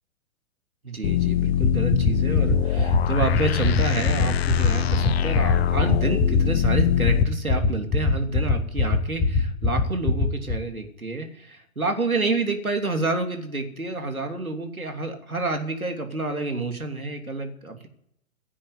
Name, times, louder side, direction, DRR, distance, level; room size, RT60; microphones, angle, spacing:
voice 1, 0.8-17.9, right 3 dB, 85° right, 4 dB, 3.2 m, -29 dB
sound 1, 1.0-7.2, left 10 dB, 50° left, 0.7 m, -24 dB
sound 2, 1.6-10.5, left 3 dB, 10° left, 5.9 m, -20 dB
17.0 x 8.5 x 9.4 m, 0.74 s
figure-of-eight pair, 115°, 42 cm